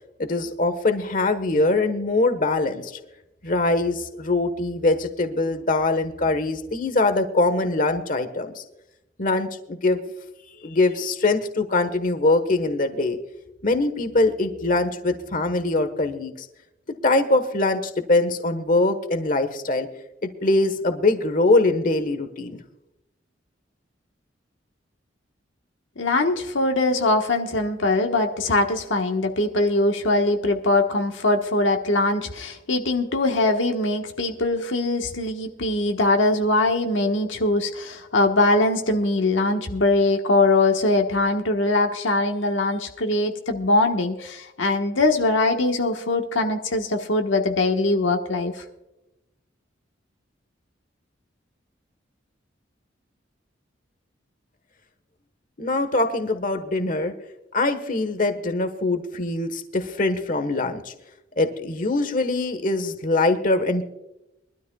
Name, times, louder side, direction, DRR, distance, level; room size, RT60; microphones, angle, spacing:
voice 1, 0.2-3.0 3.4-8.6 9.2-10.0 10.6-13.2 13.6-16.5 17.0-19.9 20.2-22.6 55.6-57.1 57.5-60.9 61.4-63.8, left 2 dB, 45° left, 9 dB, 1.3 m, -23 dB
voice 2, 26.0-48.6, left 2 dB, 75° left, 3 dB, 1.3 m, -22 dB
23.5 x 13.0 x 2.3 m, 0.91 s
head